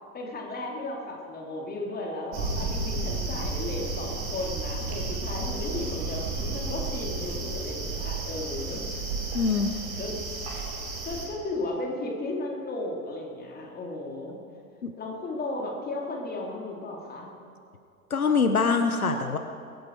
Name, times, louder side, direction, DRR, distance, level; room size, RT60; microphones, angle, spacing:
voice 1, 0.1-8.8 9.7-10.2 11.0-14.4 15.0-17.3, left 2 dB, 20° left, -1 dB, 2.9 m, -35 dB
sound 1, 2.3-11.3, right 3 dB, 50° right, 3.4 m, -32 dB
voice 2, 9.3-9.7 14.8-14.9 18.1-19.4, left 5 dB, 85° left, 6 dB, 0.9 m, -24 dB
22.5 x 10.5 x 4.6 m, 2.5 s
figure-of-eight pair, 80°, 42 cm